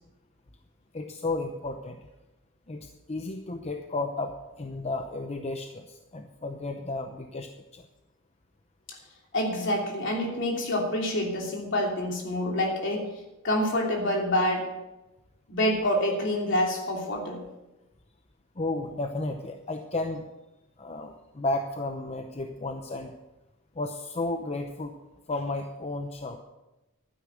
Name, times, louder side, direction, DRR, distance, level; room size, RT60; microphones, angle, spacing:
voice 1, 0.9-2.0 2.7-7.9 18.6-20.3 20.8-23.1 23.8-24.9 25.3-26.4, left 2 dB, 30° left, 5 dB, 0.7 m, -33 dB
voice 2, 9.3-13.1 13.4-14.7 15.5-17.4, left 1 dB, 60° left, 0 dB, 3.0 m, -27 dB
12.0 x 9.7 x 6.3 m, 1.0 s
head